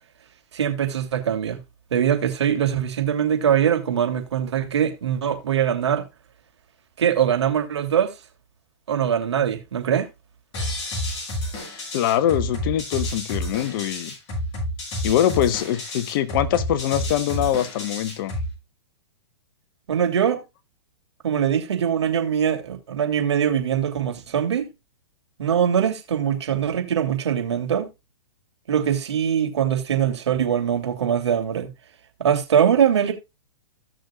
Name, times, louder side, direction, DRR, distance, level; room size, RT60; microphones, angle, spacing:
voice 1, 0.5-1.6 1.9-6.0 7.0-8.1 8.9-10.1 19.9-20.4 21.2-24.7 25.4-27.9 28.7-31.7 32.2-33.1, right 8 dB, 75° right, 2.7 m, -22 dB
sound 1, 10.5-18.5, left 1 dB, 35° left, 7.0 m, -30 dB
voice 2, 11.9-14.1 15.0-18.3, left 11 dB, 50° left, 1.1 m, -23 dB
16.0 x 6.5 x 2.4 m
hypercardioid pair, 130°, 15 cm